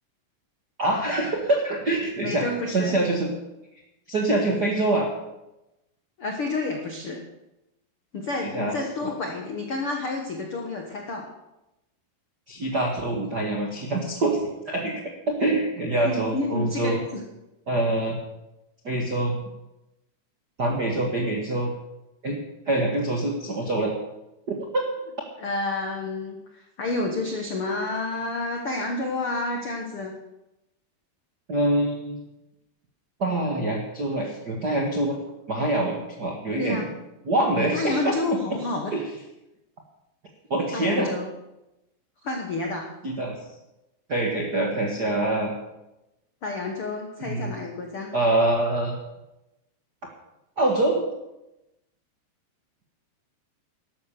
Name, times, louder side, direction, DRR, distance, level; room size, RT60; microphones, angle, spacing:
voice 1, 0.8-3.3 4.1-5.1 8.4-8.7 9.0-9.1 12.5-17.0 17.7-18.2 18.8-19.4 20.6-21.7 22.2-22.4 22.7-23.9 24.5-24.8 31.5-32.2 33.2-35.1 35.5-36.9 37.2-38.2 38.5-38.6 38.9-39.0 40.5-41.1 43.0-43.4 44.1-45.5 47.2-47.5 48.1-48.9 50.6-51.0, right 2 dB, 55° right, 0 dB, 1.0 m, -25 dB
voice 2, 2.2-3.0 6.2-7.2 8.1-11.3 16.0-17.2 25.4-30.1 36.6-36.9 37.5-38.9 40.7-41.3 42.2-42.9 46.4-48.1, left 3 dB, 70° left, 2 dB, 1.3 m, -29 dB
13.0 x 12.0 x 6.8 m, 0.94 s
omnidirectional pair, 4.9 m